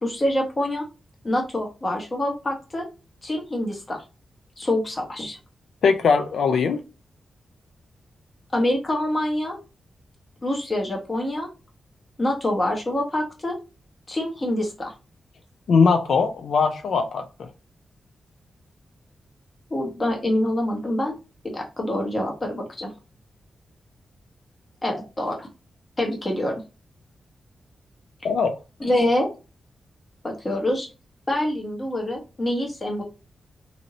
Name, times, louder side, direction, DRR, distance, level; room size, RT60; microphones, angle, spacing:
voice 1, 0.0-0.9 1.2-2.9 3.2-4.0 4.6-5.4 8.5-9.6 10.4-11.5 12.2-13.6 14.1-14.9 19.7-21.1 21.4-22.9 24.8-25.5 26.0-26.6 28.8-29.3 30.2-30.9 31.3-33.0, left 1 dB, 25° left, 1.0 m, -25 dB
voice 2, 5.8-6.8 15.7-17.5 28.2-28.6, left 5 dB, 75° left, 0.3 m, -20 dB
2.7 x 2.6 x 2.9 m
wide cardioid pair, 130°, 0 cm